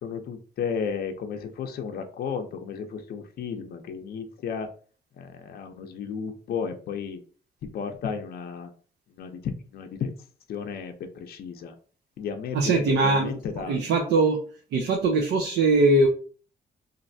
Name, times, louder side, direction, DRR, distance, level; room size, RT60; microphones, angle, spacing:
voice 1, 0.0-4.7 5.2-7.2 7.7-8.7 9.1-10.1 10.5-11.7 12.2-13.8, left 6 dB, 65° left, 5 dB, 0.5 m, -33 dB
voice 2, 12.5-13.3 13.7-14.4 14.7-16.1, right 3 dB, 90° right, 2 dB, 0.6 m, -21 dB
3.1 x 2.5 x 2.6 m, 0.41 s
cardioid pair, 125°, 17 cm